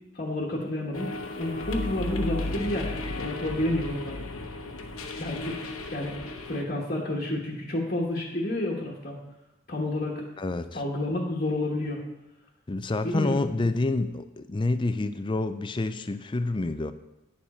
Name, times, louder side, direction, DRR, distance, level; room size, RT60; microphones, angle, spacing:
voice 1, 0.1-4.2 5.2-9.2 9.7-10.2 10.7-12.0 13.0-13.5, left 1 dB, 40° left, -3 dB, 1.3 m, -30 dB
sound 1, 0.9-6.6, left 2 dB, 80° left, 1.0 m, -34 dB
voice 2, 10.4-10.8 12.7-16.9, left 2 dB, 25° left, 11 dB, 0.4 m, -28 dB
10.0 x 7.1 x 4.3 m, 0.97 s
head